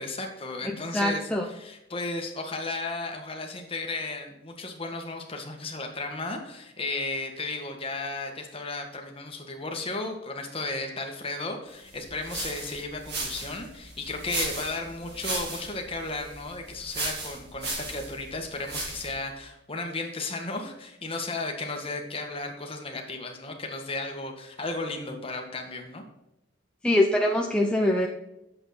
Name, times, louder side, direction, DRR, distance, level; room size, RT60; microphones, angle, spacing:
voice 1, 0.0-26.0, left 3 dB, 30° left, 3 dB, 1.7 m, -34 dB
voice 2, 0.9-1.5 26.8-28.1, left 1 dB, 5° left, 0 dB, 0.8 m, -23 dB
sound 1, 11.9-19.2, right 2 dB, 60° right, 3.4 m, -36 dB
9.2 x 7.6 x 4.2 m, 0.89 s
head